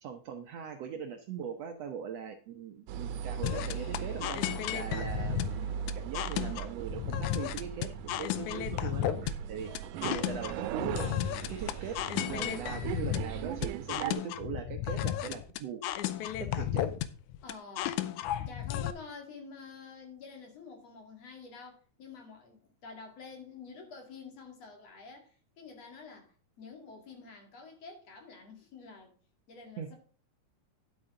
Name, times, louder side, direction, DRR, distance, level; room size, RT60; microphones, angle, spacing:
voice 1, 0.0-4.4 4.7-9.2 9.5-9.7 10.0-11.1 11.5-15.8 16.4-16.9 29.8-29.9, right 7 dB, 70° right, 1.7 m, -40 dB
sound 1, 2.9-14.1, right 9 dB, 85° right, 2.2 m, -38 dB
sound 2, 3.4-18.9, left 12 dB, 80° left, 2.0 m, -34 dB
voice 2, 17.4-18.0 18.5-29.2 29.5-30.0, left 4 dB, 55° left, 3.2 m, -48 dB
10.5 x 8.3 x 3.7 m
omnidirectional pair, 3.7 m